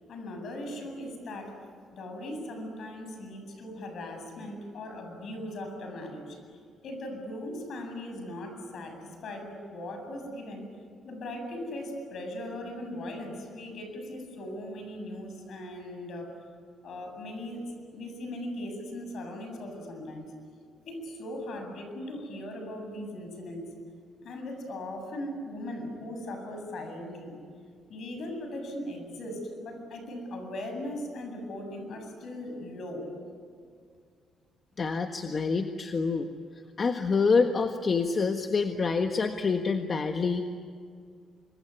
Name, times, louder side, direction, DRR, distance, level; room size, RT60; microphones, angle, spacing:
voice 1, 0.1-1.6 1.9-6.6 6.8-10.7 11.0-16.3 16.8-17.7 17.9-20.3 20.9-23.7 24.2-27.4 27.9-33.1, left 1 dB, 65° left, 5 dB, 7.9 m, -39 dB
voice 2, 34.8-36.3 36.8-40.4, left 4 dB, 40° left, 6 dB, 1.5 m, -26 dB
27.0 x 22.5 x 9.9 m, 2.2 s
cardioid pair, 90°, 0 cm